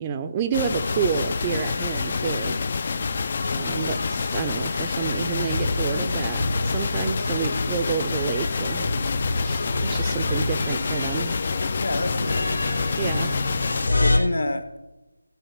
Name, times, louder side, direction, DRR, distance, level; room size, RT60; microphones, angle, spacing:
voice 1, 0.0-2.6 3.5-8.9 9.4-11.4 13.0-13.4, right 7 dB, 20° right, 10 dB, 0.5 m, -29 dB
sound 1, 0.5-13.9, left 5 dB, 40° left, 0.4 m, -28 dB
sound 2, 0.8-14.2, left 2 dB, 85° left, 2.8 m, -29 dB
voice 2, 2.4-3.2 11.8-12.6 13.8-14.8, left 2 dB, 65° left, 10 dB, 1.4 m, -30 dB
16.0 x 5.6 x 5.8 m, 1.0 s
figure-of-eight pair, 165°, 0 cm